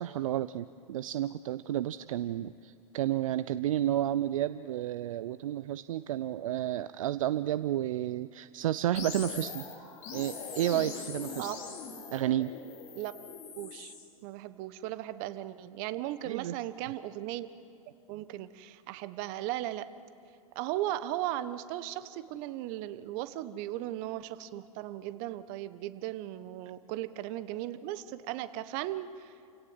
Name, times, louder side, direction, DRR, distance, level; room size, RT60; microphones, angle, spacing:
voice 1, 0.0-9.7 10.1-11.5 12.1-12.5 16.3-16.6, right 12 dB, 65° right, 14 dB, 0.6 m, -31 dB
sound 1, 8.9-14.0, left 5 dB, 40° left, 4.7 m, -41 dB
voice 2, 13.6-13.9 14.2-17.5 18.1-19.9 20.5-29.3, right 14 dB, 45° right, 13 dB, 1.1 m, -37 dB
29.0 x 17.0 x 7.8 m, 2.4 s
hypercardioid pair, 95°, 18 cm